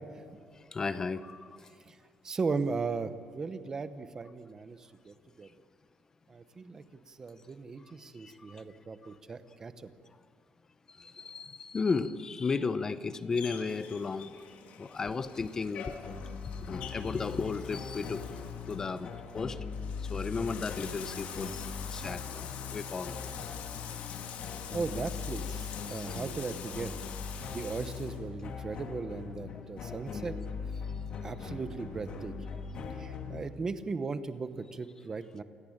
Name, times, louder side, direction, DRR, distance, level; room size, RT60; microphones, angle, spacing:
voice 1, 0.7-1.6 11.0-14.3 14.8-15.9 16.6-18.2 18.7-19.6 20.1-23.1 25.9-26.0 29.8-30.0, left 4 dB, 20° left, 13 dB, 0.8 m, -34 dB
voice 2, 2.2-4.8 5.0-5.5 6.3-9.7 24.7-26.9 27.5-30.4 31.2-32.3 33.0-35.4, right 4 dB, 20° right, 11 dB, 1.0 m, -37 dB
Bathtub (filling or washing), 13.3-28.2, left 7 dB, 60° left, 2.7 m, -45 dB
sound 1, 16.0-33.4, left 5 dB, 40° left, 2.1 m, -40 dB
28.0 x 17.5 x 8.8 m, 2.1 s
cardioid pair, 175°, 3 cm